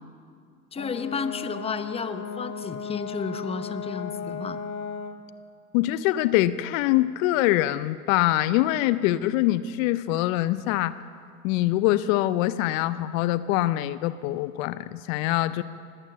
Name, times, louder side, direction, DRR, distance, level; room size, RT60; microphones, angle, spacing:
Brass instrument, 0.7-5.2, left 6 dB, 40° left, 1.1 m, -35 dB
voice 1, 0.7-4.6, left 5 dB, 15° left, 11 dB, 0.8 m, -32 dB
voice 2, 5.7-11.0 11.4-15.6, left 15 dB, 65° left, 15 dB, 0.7 m, -24 dB
21.0 x 8.9 x 7.5 m, 2.2 s
hypercardioid pair, 95°, 44 cm